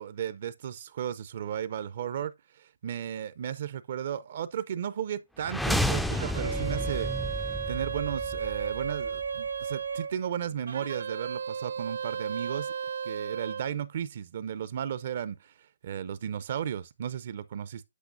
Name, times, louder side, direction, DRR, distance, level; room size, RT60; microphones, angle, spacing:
voice 1, 0.0-7.1 7.7-12.7 13.0-15.5 15.8-17.8, right 9 dB, 50° right, 0.5 m, -34 dB
sound 1, 5.4-9.4, equal, ahead, 0.4 m, -31 dB
sound 2, 6.1-10.1 10.7-13.7, right 7 dB, 75° right, 0.9 m, -34 dB
8.2 x 8.0 x 2.5 m
hypercardioid pair, 145°, 0 cm